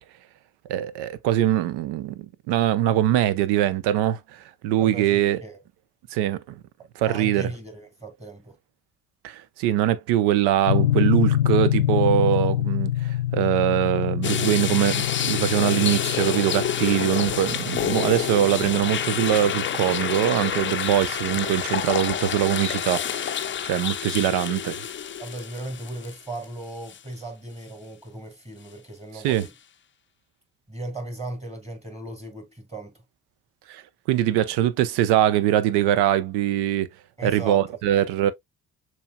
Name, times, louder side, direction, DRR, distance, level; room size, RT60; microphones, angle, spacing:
voice 1, 0.7-4.2 4.6-5.4 6.1-6.6 7.0-7.5 9.2-24.8 29.2-29.5 33.7-33.8 34.1-36.9 37.2-38.3, right 12 dB, 65° right, 0.7 m, -22 dB
voice 2, 4.8-5.6 7.1-8.6 25.2-29.5 30.7-33.0 37.2-38.0 38.2-38.3, right 2 dB, 15° right, 2.1 m, -37 dB
sound 1, 10.7-20.8, left 12 dB, 85° left, 0.6 m, -26 dB
sound 2, 14.2-26.4 26.9-27.0 29.3-29.5, left 9 dB, 30° left, 0.5 m, -28 dB
6.8 x 3.1 x 2.2 m
hypercardioid pair, 45°, 43 cm